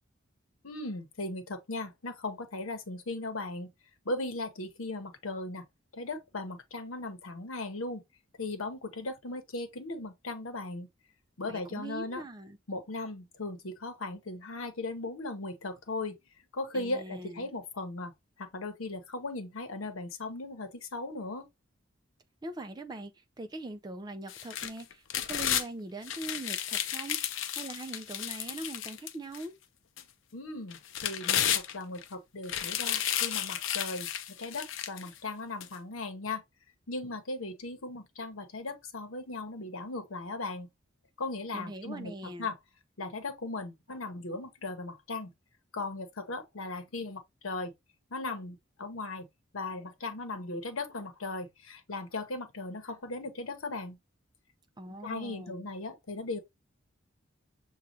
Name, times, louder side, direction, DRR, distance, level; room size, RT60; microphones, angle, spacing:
voice 1, 0.6-3.7 4.0-5.6 5.9-8.0 8.4-10.9 11.4-12.2 12.7-16.2 16.5-18.1 18.4-21.5 30.3-34.1 34.4-36.4 36.9-40.7 41.2-42.1 42.4-42.5 43.0-45.3 45.7-47.7 48.1-49.3 49.5-54.0 55.0-56.4, left 2 dB, 85° left, 0.9 m, -37 dB
voice 2, 11.4-12.6 16.7-17.5 22.4-29.5 41.5-42.5 54.8-55.7, right 2 dB, 20° right, 0.4 m, -42 dB
sound 1, 24.3-25.7 26.1-29.4 30.0-30.1 30.7-32.0 32.4-35.1 35.6-35.7, left 10 dB, 70° left, 0.5 m, -32 dB
6.3 x 2.3 x 2.7 m
head